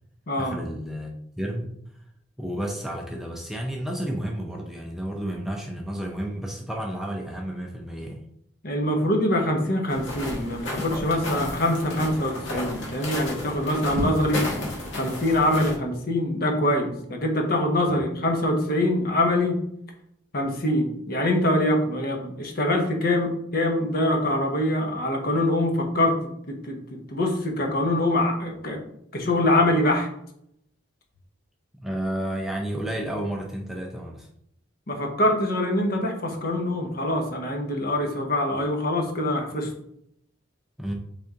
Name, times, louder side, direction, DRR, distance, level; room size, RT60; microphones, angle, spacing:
voice 1, 0.4-1.7 2.4-8.2 14.0-14.1 17.9-18.0 31.8-34.3 40.8-40.9, right 1 dB, ahead, 0 dB, 0.4 m, -31 dB
voice 2, 8.6-14.4 15.0-19.6 20.3-26.2 26.5-28.8 29.1-30.1 34.9-39.7, left 1 dB, 50° left, 3 dB, 0.8 m, -24 dB
sound 1, 9.9-15.8, left 1 dB, 75° left, 1.5 m, -32 dB
4.1 x 3.5 x 3.6 m, 0.73 s
head